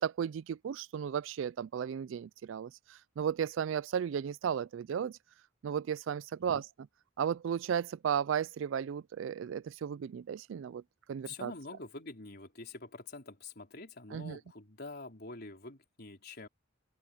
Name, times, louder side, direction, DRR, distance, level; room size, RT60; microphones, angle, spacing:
voice 1, 0.0-5.2 5.6-6.7 7.2-10.8 11.1-11.5 14.1-14.4, right 8 dB, 65° right, 0.3 m, -34 dB
voice 2, 11.3-16.5, left 3 dB, 50° left, 4.2 m, -46 dB
head